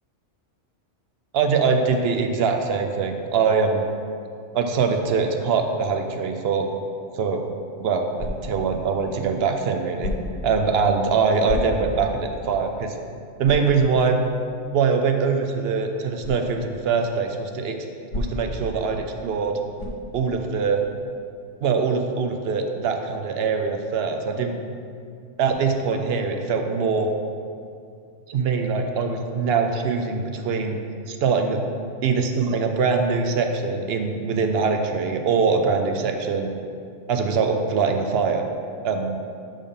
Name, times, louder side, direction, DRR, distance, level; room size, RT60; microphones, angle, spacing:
voice 1, 1.3-3.8 4.5-6.7 7.1-7.4 7.8-10.1 10.4-12.9 13.4-14.2 14.7-17.8 18.1-19.6 20.1-20.8 21.6-24.5 25.4-27.1 28.3-30.8 31.1-31.6 32.0-36.5 37.1-38.5 38.8-39.2, right 5 dB, 65° right, 5 dB, 0.7 m, -23 dB
sound 1, 8.1-8.7 10.0-10.5 11.4-12.1 12.6-12.7 13.4-13.8 16.2-16.4 18.1-18.6 19.8-20.1, left 2 dB, 40° left, 1.1 m, -30 dB
6.7 x 3.6 x 5.4 m, 2.4 s
omnidirectional pair, 1.2 m